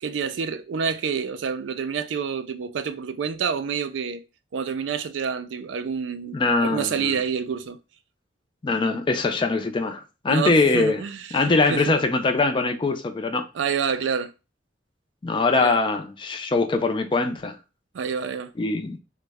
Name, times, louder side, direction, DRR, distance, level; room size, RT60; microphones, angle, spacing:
voice 1, 0.0-4.2 4.5-7.8 10.3-11.9 13.5-14.3 15.6-15.8 17.9-18.5, right 6 dB, 80° right, 0.4 m, -28 dB
voice 2, 6.3-7.2 8.6-11.0 11.3-13.5 15.2-17.6 18.6-19.0, left 3 dB, 25° left, 0.4 m, -22 dB
3.1 x 2.1 x 3.4 m
head